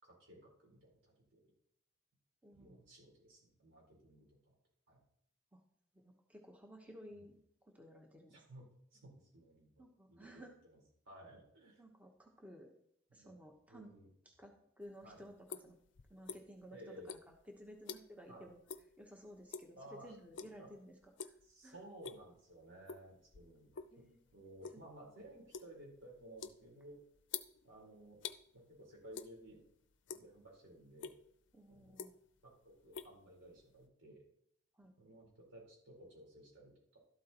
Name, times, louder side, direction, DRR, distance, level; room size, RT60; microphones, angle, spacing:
voice 1, 0.0-1.4 2.5-4.6 4.9-5.0 7.2-7.3 8.3-8.6 8.9-10.5 10.7-10.8 11.1-11.8 13.1-13.3 13.7-14.1 15.0-15.2 16.7-17.1 18.3-18.5 19.7-20.1 20.6-20.7 21.4-24.0 24.3-27.0 27.6-28.2 28.5-29.6 30.1-31.2 31.7-32.0 32.4-34.2 35.0-37.0, right 1 dB, 90° right, -2 dB, 4.2 m, -56 dB
voice 2, 2.4-2.7 5.5-5.6 5.9-8.4 9.8-10.5 11.8-12.7 13.1-13.9 14.2-15.8 16.1-18.6 19.0-20.9 21.2-21.4 21.6-21.8 23.9-24.2 31.5-32.2 34.7-34.9, equal, 10° right, 2 dB, 1.0 m, -55 dB
sound 1, 14.8-16.7 17.0-18.3 18.7-18.9 19.3-19.8 20.3-20.7 21.0-21.4 21.8-22.4 22.9-24.0 24.3-28.4 29.1-29.7 29.9-30.6 31.0-31.2 31.7-32.4 32.7-33.8, left 7 dB, 75° left, 0.5 m, -47 dB
12.5 x 12.0 x 3.0 m, 0.72 s
head